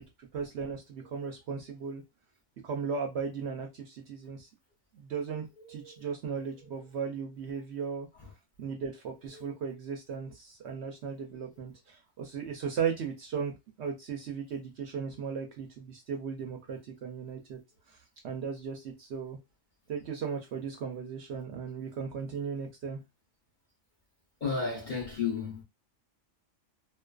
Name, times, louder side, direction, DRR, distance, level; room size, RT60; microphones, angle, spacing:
voice 1, 0.2-2.0 2.6-4.5 4.9-8.1 8.6-17.6 17.9-19.4 19.9-23.0, right 6 dB, 65° right, 0.7 m, -36 dB
voice 2, 24.4-25.6, left 5 dB, 45° left, 0.7 m, -32 dB
2.4 x 2.4 x 2.2 m
omnidirectional pair, 1.4 m